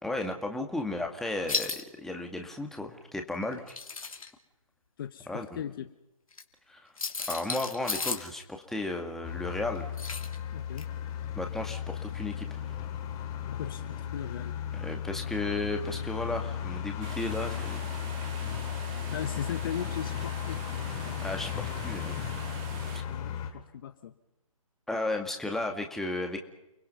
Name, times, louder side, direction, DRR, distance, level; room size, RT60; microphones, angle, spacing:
voice 1, 0.0-3.7 5.3-5.6 6.7-6.9 7.3-9.9 11.4-12.7 14.7-17.8 21.2-22.3 22.9-23.0 24.9-26.4, left 2 dB, ahead, 3 dB, 2.0 m, -34 dB
sound 1, 1.5-1.8 3.5-4.3 6.3-6.4 7.0-8.3 10.0-10.4 10.8-10.9, left 4 dB, 70° left, 3.0 m, -33 dB
voice 2, 5.0-5.9 10.5-10.9 13.5-14.5 19.1-20.6 23.1-24.1, left 9 dB, 40° left, 9 dB, 1.2 m, -38 dB
sound 2, 9.2-23.5, left 9 dB, 20° left, 2.7 m, -35 dB
sound 3, 17.0-23.0, right 7 dB, 20° right, 2.2 m, -44 dB
30.0 x 21.0 x 5.6 m, 0.92 s
figure-of-eight pair, 140°, 18 cm